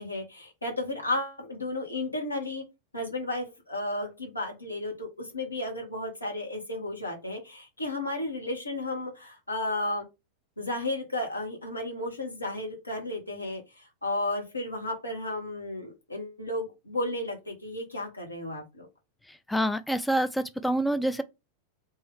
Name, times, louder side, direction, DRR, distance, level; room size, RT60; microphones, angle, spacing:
voice 1, 0.0-2.6 2.9-10.0 10.6-18.9, left 1 dB, 85° left, 1.6 m, -33 dB
voice 2, 19.5-21.2, right 1 dB, 5° left, 0.3 m, -26 dB
3.4 x 3.2 x 3.5 m
figure-of-eight pair, 90°, 0 cm